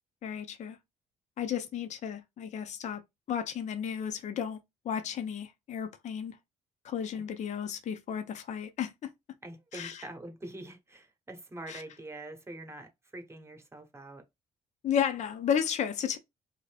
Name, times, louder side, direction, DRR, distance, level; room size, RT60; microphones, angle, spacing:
voice 1, 0.2-0.8 1.4-3.0 3.3-6.4 6.8-9.1 9.7-10.0 11.7-11.8 14.8-16.2, left 8 dB, 55° left, 0.5 m, -33 dB
voice 2, 9.4-14.2, right 1 dB, 20° right, 0.9 m, -45 dB
2.7 x 2.6 x 3.3 m
supercardioid pair, 75°, 15 cm